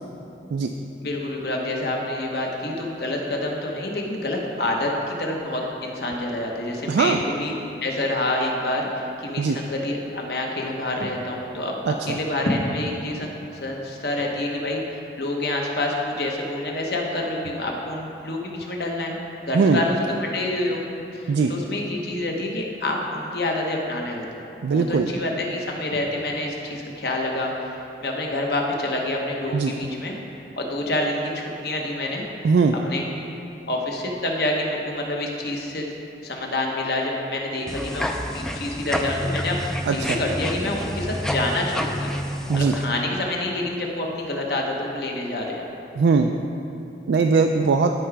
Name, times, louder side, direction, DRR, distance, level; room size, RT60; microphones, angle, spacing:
voice 1, 1.0-7.5 7.8-13.3 13.6-19.2 19.5-20.8 21.1-24.4 24.7-30.2 30.6-32.2 32.8-33.0 33.7-35.9 36.2-39.6 39.9-42.1 42.5-45.6, left 1 dB, 65° left, 0 dB, 1.1 m, -27 dB
voice 2, 6.9-7.2 9.4-9.6 11.9-12.2 19.5-19.8 21.3-21.5 24.6-25.1 29.5-29.7 32.4-32.7 39.9-40.2 42.5-42.7 46.0-46.3 47.1-47.9, right 4 dB, 75° right, 4 dB, 0.3 m, -20 dB
sound 1, 37.7-42.8, equal, 5° left, 0.3 m, -28 dB
14.5 x 4.8 x 3.4 m, 2.8 s
head